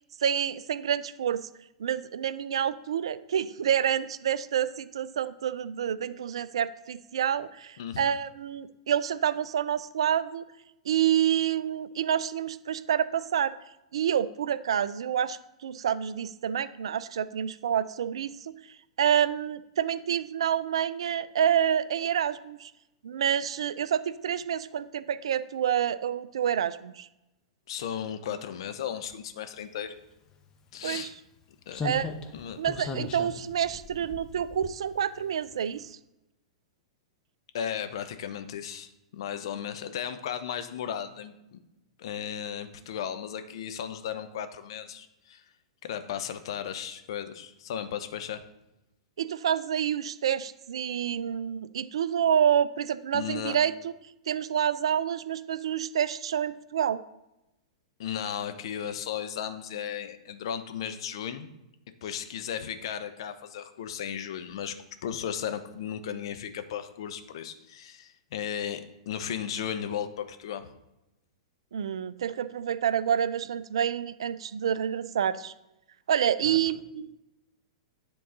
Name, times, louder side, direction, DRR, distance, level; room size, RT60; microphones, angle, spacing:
voice 1, 0.2-1.5 1.8-10.4 10.9-13.5 13.9-18.5 19.0-22.7 23.0-27.1 30.8-31.1 31.8-32.1 32.6-36.0 49.2-53.9 54.3-57.0 71.7-75.5 76.1-77.2, right 9 dB, 65° right, 16 dB, 0.3 m, -28 dB
voice 2, 27.7-30.0 30.7-31.1 31.7-31.8 32.3-32.6 37.5-41.6 42.0-45.4 45.8-48.4 53.1-53.6 58.0-61.5 62.0-64.7 65.0-68.8 69.1-70.7 76.4-76.6, left 9 dB, 55° left, 9 dB, 0.7 m, -35 dB
Slam, 30.3-30.4 31.7-35.2 35.5-35.7, left 4 dB, 25° left, 0.8 m, -38 dB
9.9 x 3.8 x 4.1 m, 0.93 s
figure-of-eight pair, 105°, 3 cm